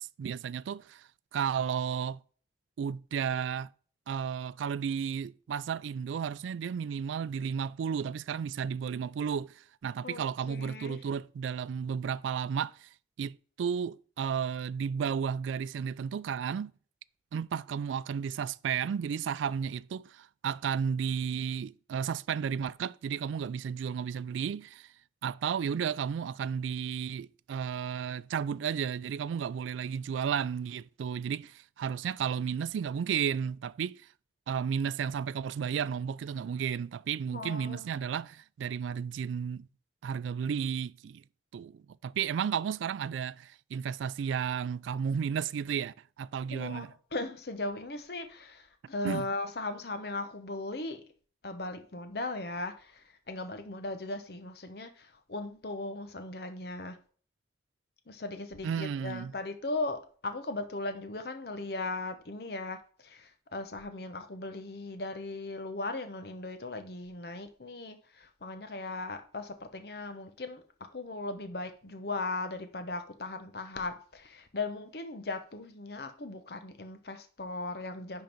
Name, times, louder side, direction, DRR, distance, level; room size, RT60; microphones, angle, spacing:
voice 1, 0.0-2.2 2.8-3.7 4.1-12.9 13.2-16.7 17.3-24.9 25.2-34.0 34.5-39.7 40.0-41.2 41.5-46.9 49.0-49.3 58.6-59.3, right 7 dB, 85° right, 0.3 m, -33 dB
voice 2, 10.0-11.0 37.3-37.9 46.5-51.0 51.4-57.0 58.1-78.2, left 2 dB, 55° left, 0.8 m, -38 dB
10.5 x 3.8 x 4.5 m
head